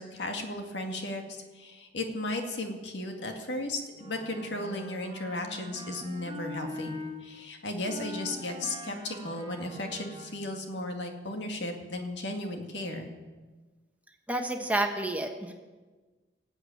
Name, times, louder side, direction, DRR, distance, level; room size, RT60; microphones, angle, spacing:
voice 1, 0.0-13.1, left 1 dB, 70° left, 4 dB, 2.1 m, -35 dB
Wind instrument woodwind instrument, 3.9-7.2 7.8-10.6, left 1 dB, 25° right, 1.8 m, -43 dB
voice 2, 14.3-15.5, right 1 dB, 10° right, 4 dB, 1.2 m, -29 dB
19.5 x 8.2 x 8.6 m, 1.3 s
head